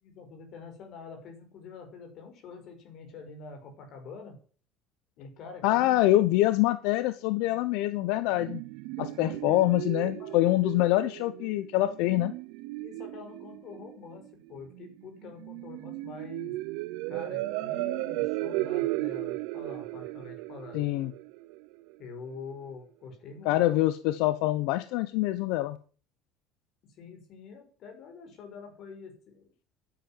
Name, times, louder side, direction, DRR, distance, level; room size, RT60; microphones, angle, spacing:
voice 1, 0.0-4.4 5.2-6.0 9.0-9.6 10.2-10.4 12.7-16.5 17.1-20.8 22.0-23.8 26.9-29.5, left 5 dB, 40° left, 4 dB, 6.1 m, -46 dB
voice 2, 5.6-8.6 9.0-12.3 20.7-21.1 23.4-25.8, left 16 dB, 75° left, 12 dB, 0.9 m, -25 dB
sound 1, 8.0-21.9, right 19 dB, 90° right, 0.8 m, -36 dB
11.0 x 10.0 x 9.2 m, 0.42 s
cardioid pair, 180°, 0 cm